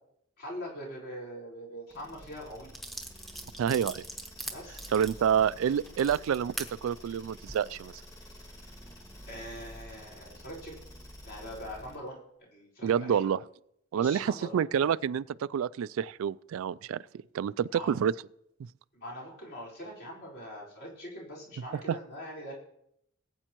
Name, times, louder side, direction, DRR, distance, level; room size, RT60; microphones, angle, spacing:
voice 1, 0.4-2.7 4.5-4.8 5.2-5.4 9.3-10.8 11.2-13.2 13.9-14.6 17.7-18.0 18.9-22.5, equal, 50° left, 4.6 m, -43 dB
sound 1, 1.9-12.1, equal, 15° left, 1.8 m, -49 dB
sound 2, 2.2-2.3 2.7-6.7 7.3-7.6, right 1 dB, ahead, 1.0 m, -41 dB
voice 2, 3.6-4.0 4.9-8.0 12.8-13.4 13.9-17.0 17.3-18.1 21.7-22.0, right 8 dB, 85° right, 0.3 m, -28 dB
19.5 x 8.8 x 3.0 m
head